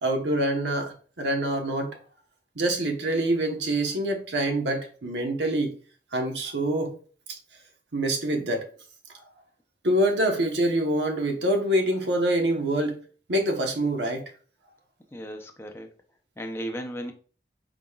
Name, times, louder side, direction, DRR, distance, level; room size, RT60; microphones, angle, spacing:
voice 1, 0.0-1.9 2.6-5.7 6.1-6.9 7.9-8.7 9.8-12.9 13.3-14.2, right 1 dB, 90° right, 3 dB, 1.0 m, -25 dB
voice 2, 15.1-15.9 16.4-17.1, equal, 15° left, 4 dB, 0.5 m, -35 dB
4.8 x 3.8 x 2.3 m, 0.40 s
head